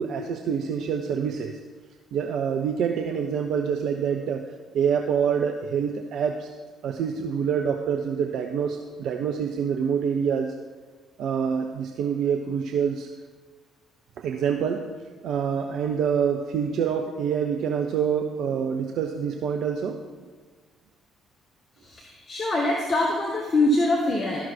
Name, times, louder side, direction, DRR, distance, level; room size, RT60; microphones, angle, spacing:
voice 1, 0.0-1.6 2.1-4.4 4.7-6.5 6.8-10.5 11.2-13.1 14.2-14.9 15.2-20.3, right 7 dB, 55° right, 4 dB, 0.5 m, -26 dB
voice 2, 21.9-24.4, left 2 dB, 30° left, -1 dB, 1.2 m, -24 dB
12.5 x 6.0 x 4.2 m, 1.5 s
figure-of-eight pair, 45°, 0 cm